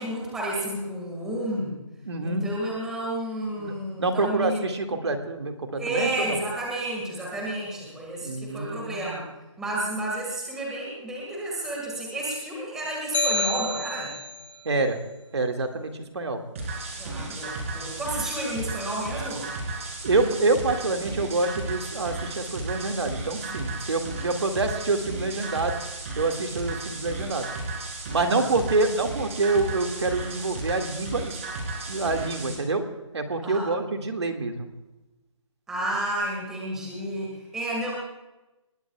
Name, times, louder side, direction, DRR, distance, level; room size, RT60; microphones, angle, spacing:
voice 1, 0.0-1.8 2.2-4.6 5.8-9.3 9.6-14.2 17.0-19.5 28.3-28.6 33.4-33.7 35.7-37.9, right 1 dB, 5° right, -4 dB, 1.9 m, -31 dB
voice 2, 2.1-2.4 3.6-6.4 8.2-8.9 14.7-15.0 15.3-16.4 20.0-25.7 26.1-27.5 28.1-31.4 31.9-32.8 33.1-34.7, right 3 dB, 55° right, 4 dB, 2.1 m, -26 dB
sound 1, 13.1-14.5, left 1 dB, 65° left, 2.5 m, -27 dB
sound 2, 16.6-32.6, right 3 dB, 25° right, 3.5 m, -34 dB
25.5 x 20.5 x 2.4 m, 1.0 s
hypercardioid pair, 175°, 17 cm